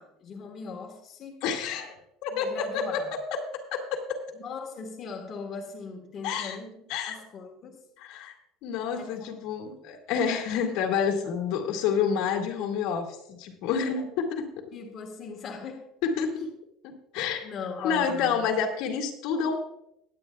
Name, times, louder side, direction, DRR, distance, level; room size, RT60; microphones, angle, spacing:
voice 1, 0.0-1.4 2.3-3.1 4.3-7.9 8.9-9.2 9.7-9.8 14.7-15.9 17.4-18.5, left 5 dB, 30° left, 0 dB, 1.4 m, -39 dB
voice 2, 1.4-1.9 2.2-3.0 3.7-4.2 6.2-6.6 6.9-7.2 8.0-8.3 8.6-14.5 16.0-16.5 16.8-17.4 17.8-19.6, left 6 dB, 60° left, 2 dB, 2.0 m, -29 dB
21.0 x 8.7 x 2.3 m, 0.80 s
cardioid pair, 165°, 0 cm